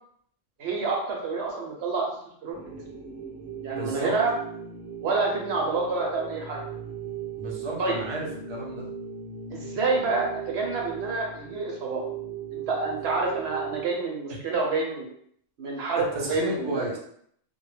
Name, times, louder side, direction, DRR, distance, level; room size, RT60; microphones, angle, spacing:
voice 1, 0.6-2.1 2.4-2.7 3.6-4.4 5.0-6.6 7.8-8.0 9.5-12.0 12.5-15.1 15.6-16.9, right 3 dB, 65° right, -1 dB, 0.8 m, -28 dB
sound 1, 2.5-13.8, right 8 dB, 85° right, 1.0 m, -38 dB
voice 2, 3.7-4.1 7.4-8.8 16.1-17.0, right 1 dB, 40° right, -4 dB, 0.4 m, -32 dB
2.2 x 2.0 x 3.1 m, 0.67 s
omnidirectional pair, 1.3 m